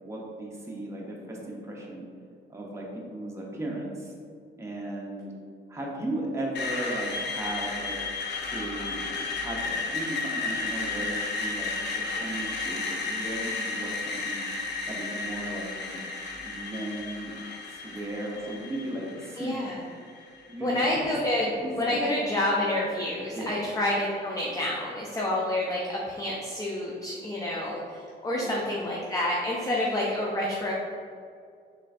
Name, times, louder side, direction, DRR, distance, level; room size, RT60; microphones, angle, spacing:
voice 1, 0.0-2.1 2.5-4.1 4.6-5.3 5.7-8.0 8.4-11.7 12.0-14.5 14.9-16.0 16.4-17.4 17.7-19.5 20.5-20.8 21.6-22.0 23.3-23.6 28.3-28.7, right 1 dB, 15° right, -3 dB, 0.8 m, -36 dB
Screech, 6.5-20.5, left 3 dB, 60° left, 0.7 m, -33 dB
voice 2, 19.4-19.8 20.6-21.5 21.8-30.7, left 1 dB, 15° left, -3 dB, 0.5 m, -28 dB
3.7 x 3.3 x 2.7 m, 2.3 s
supercardioid pair, 70°, 21 cm